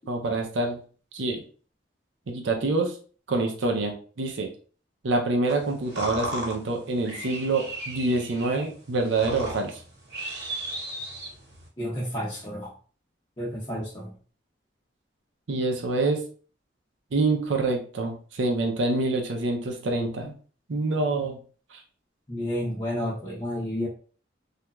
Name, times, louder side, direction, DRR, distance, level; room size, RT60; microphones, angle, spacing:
voice 1, 0.1-0.8 1.1-1.4 2.3-2.9 3.3-4.5 5.0-9.8 15.5-16.2 17.1-20.3 20.7-21.4 21.7-21.8, right 2 dB, 80° right, 2 dB, 0.5 m, -26 dB
sound 1, 5.5-11.7, right 1 dB, 60° right, 1.0 m, -36 dB
voice 2, 11.8-12.7 13.4-14.1 22.3-23.9, equal, 25° left, -8 dB, 0.6 m, -31 dB
3.0 x 2.4 x 2.2 m, 0.41 s
head